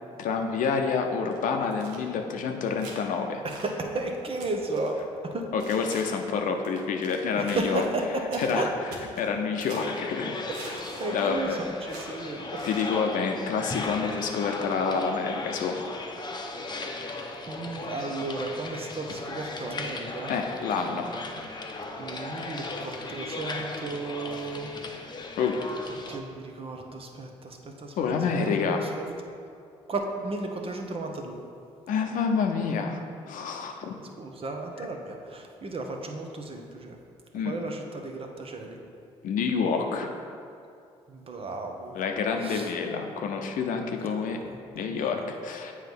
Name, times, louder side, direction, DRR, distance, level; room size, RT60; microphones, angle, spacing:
voice 1, 0.2-3.4 5.5-7.8 8.4-8.7 9.2-10.4 11.1-11.6 12.6-15.8 20.3-21.1 25.4-25.6 28.0-28.9 31.9-33.9 37.3-37.6 39.2-40.1 41.9-44.4 44.7-45.7, left 5 dB, 65° left, 4 dB, 0.6 m, -28 dB
sound 1, 1.3-2.0 2.6-3.0 3.5-3.8 4.4-4.9 5.6-6.3 6.6-7.2 7.5-7.9 8.3-8.6 8.9-10.0 10.5-11.3 11.9-12.1 12.6-13.0 13.6-13.9, right 3 dB, 85° right, 0.9 m, -44 dB
voice 2, 3.4-5.5 7.3-8.7 10.5-12.7 17.5-20.3 22.0-24.8 25.9-29.1 29.9-31.4 34.2-37.0 37.4-38.8 41.1-42.0 42.4-42.7 44.2-45.3, right 2 dB, 40° right, 3 dB, 0.9 m, -34 dB
sound 2, 9.8-26.2, left 3 dB, 30° left, 0.7 m, -37 dB
7.6 x 3.2 x 5.3 m, 2.4 s
hypercardioid pair, 55°, 14 cm